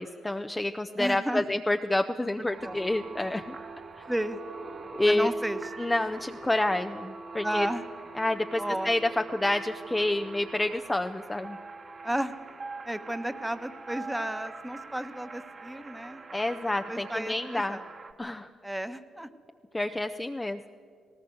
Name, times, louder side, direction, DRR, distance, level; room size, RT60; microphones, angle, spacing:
voice 1, 0.0-3.5 4.0-4.1 4.9-5.3 5.8-7.7 8.2-9.0 9.3-11.6 16.3-17.8 18.2-18.5 19.7-20.7, left 1 dB, 15° left, 6 dB, 0.6 m, -28 dB
voice 2, 1.0-1.4 2.6-2.8 4.1-4.4 5.0-5.7 7.4-7.8 8.6-8.9 12.0-12.4 12.8-16.2 16.9-17.8 18.6-19.3, right 1 dB, 5° right, 10 dB, 1.1 m, -33 dB
sound 1, 2.4-18.1, right 3 dB, 40° right, 1.5 m, -43 dB
18.5 x 18.0 x 7.8 m, 2.2 s
cardioid pair, 90°, 0 cm